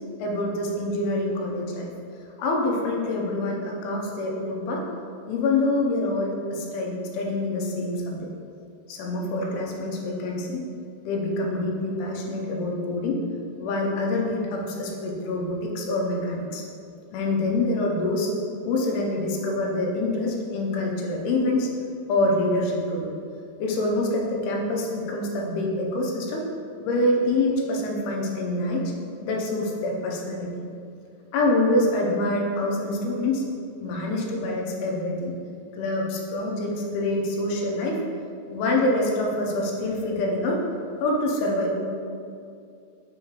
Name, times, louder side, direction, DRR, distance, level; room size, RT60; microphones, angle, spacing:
voice 1, 0.2-1.9 2.4-4.8 5.3-8.3 8.9-10.6 11.0-13.2 13.6-16.6 17.1-18.3 18.6-21.7 22.1-23.1 23.6-26.5 26.8-28.9 29.2-30.5 31.3-33.4 33.8-35.4 35.7-38.0 38.5-40.6 41.0-41.7, left 2 dB, 85° left, -1 dB, 2.6 m, -26 dB
6.3 x 5.1 x 3.1 m, 2.4 s
omnidirectional pair, 4.7 m